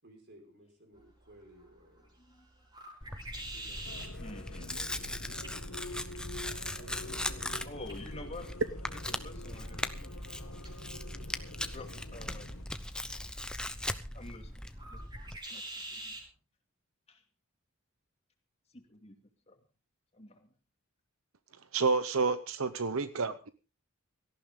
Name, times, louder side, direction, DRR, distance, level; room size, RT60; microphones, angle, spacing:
voice 1, 0.0-2.2 3.5-4.1 6.7-7.5, right 1 dB, 50° right, 4 dB, 5.3 m, -57 dB
sound 1, 0.9-16.3, right 1 dB, 20° right, 5.6 m, -50 dB
Tearing, 3.0-15.4, left 1 dB, 5° left, 0.9 m, -39 dB
sound 2, 3.8-12.6, left 2 dB, 85° left, 2.0 m, -47 dB
voice 2, 4.2-4.7 7.6-8.5 8.9-10.6 11.7-12.5 14.1-14.6 14.9-15.0 15.5-16.2 17.1-17.2 18.7-19.2 19.5-19.6 20.1-20.5, left 2 dB, 30° left, 3 dB, 2.5 m, -48 dB
voice 3, 21.7-23.5, right 4 dB, 75° right, 12 dB, 0.9 m, -29 dB
17.5 x 14.0 x 3.8 m, 0.32 s
head